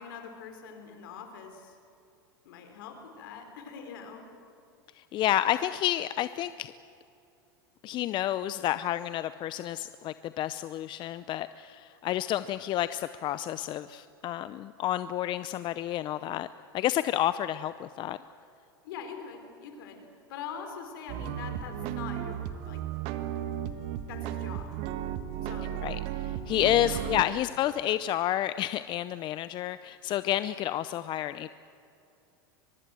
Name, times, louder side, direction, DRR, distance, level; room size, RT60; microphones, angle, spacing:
voice 1, 0.0-1.8 2.4-4.2 18.8-20.0 20.3-22.9 23.6-23.7 24.1-24.8 25.4-25.9 26.7-27.2, left 6 dB, 70° left, 5 dB, 4.5 m, -43 dB
voice 2, 5.0-6.7 7.8-16.5 16.7-18.2 25.8-31.5, left 12 dB, 40° left, 14 dB, 0.6 m, -30 dB
sound 1, 21.1-27.2, right 11 dB, 55° right, 1.6 m, -35 dB
23.5 x 22.0 x 7.8 m, 2.7 s
hypercardioid pair, 100°, 12 cm